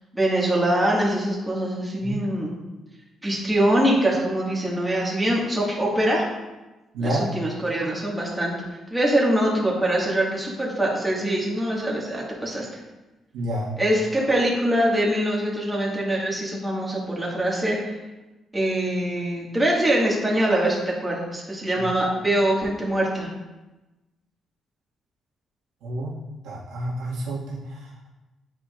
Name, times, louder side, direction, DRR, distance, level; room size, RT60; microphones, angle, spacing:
voice 1, 0.1-2.6 3.2-6.2 7.0-8.5 8.9-12.7 13.8-18.0 18.5-23.3, right 1 dB, 10° right, -4 dB, 1.9 m, -23 dB
voice 2, 6.9-7.3 13.3-13.7 21.8-21.9 25.8-26.1 26.4-28.1, right 1 dB, 90° right, -6 dB, 1.9 m, -29 dB
9.4 x 4.7 x 2.5 m, 1.1 s
cardioid pair, 90°, 0 cm